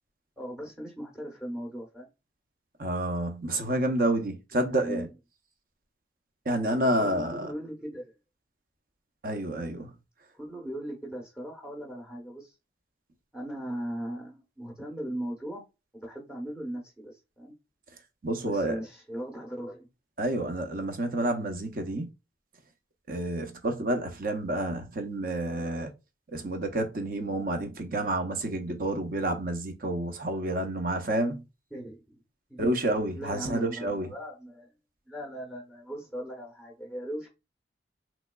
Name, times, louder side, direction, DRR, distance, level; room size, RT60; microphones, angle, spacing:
voice 1, 0.4-2.1 4.5-5.1 6.8-8.1 10.3-12.5 13.3-15.6 15.9-17.5 18.4-19.9 31.7-32.2 32.5-32.7 33.1-34.7 35.1-37.3, right 1 dB, ahead, 0.8 m, -38 dB
voice 2, 2.8-5.1 6.5-7.5 9.2-9.9 18.2-18.8 20.2-22.1 23.1-25.9 26.3-31.4 32.6-34.1, right 1 dB, 50° right, 0.7 m, -29 dB
3.4 x 3.0 x 2.2 m
head